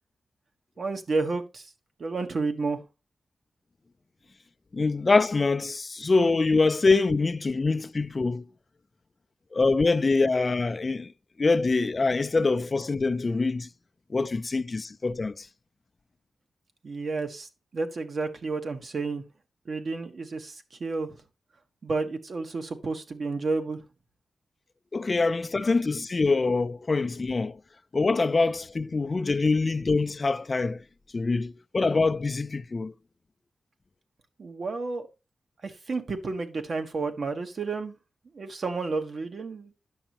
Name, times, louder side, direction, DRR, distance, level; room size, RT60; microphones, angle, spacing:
voice 1, 0.8-1.7 2.0-2.8 16.8-19.2 19.7-21.2 21.8-23.8 34.4-35.1 35.6-37.9 38.3-39.7, right 3 dB, 60° right, 1.2 m, -31 dB
voice 2, 4.7-8.4 9.5-11.1 11.4-13.7 14.1-15.5 24.9-27.6 27.9-30.8 31.1-32.9, left 3 dB, 40° left, 0.4 m, -24 dB
9.9 x 6.3 x 2.9 m
wide cardioid pair, 85°, 0 cm